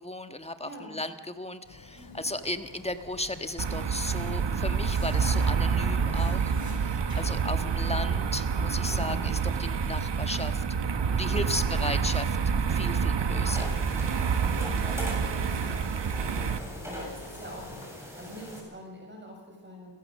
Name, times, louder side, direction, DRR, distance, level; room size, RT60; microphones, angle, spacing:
voice 1, 0.0-6.5 7.1-12.4 12.7-13.7, left 1 dB, 15° left, 9 dB, 1.5 m, -35 dB
voice 2, 0.6-1.0 2.0-2.3 4.4-4.6 6.5-7.3 8.9-9.3 11.2-11.6 13.3-14.1 14.4-19.9, equal, 25° right, -1 dB, 7.2 m, -46 dB
sound 1, 1.6-17.9, left 3 dB, 60° left, 2.9 m, -49 dB
sound 2, 3.6-16.6, right 6 dB, 90° right, 1.3 m, -27 dB
sound 3, 13.5-18.6, equal, 5° right, 7.6 m, -41 dB
30.0 x 16.0 x 6.5 m, 1.3 s
wide cardioid pair, 90°, 41 cm